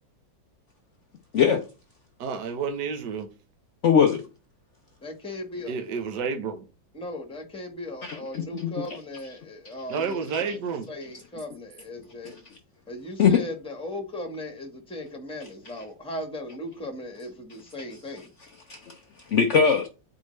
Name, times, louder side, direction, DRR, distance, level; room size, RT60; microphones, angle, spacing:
voice 1, 1.3-1.6 3.8-4.2 8.0-8.7 12.2-12.4 13.2-13.4 18.7-18.9 19.3-19.9, left 6 dB, 70° left, 0.7 m, -21 dB
voice 2, 2.2-3.3 5.7-6.6 9.9-10.9, right 5 dB, 65° right, 1.5 m, -30 dB
voice 3, 5.0-5.7 6.9-10.1 10.9-12.3 12.9-18.3, left 1 dB, 5° left, 1.0 m, -37 dB
9.2 x 4.7 x 3.2 m
omnidirectional pair, 2.1 m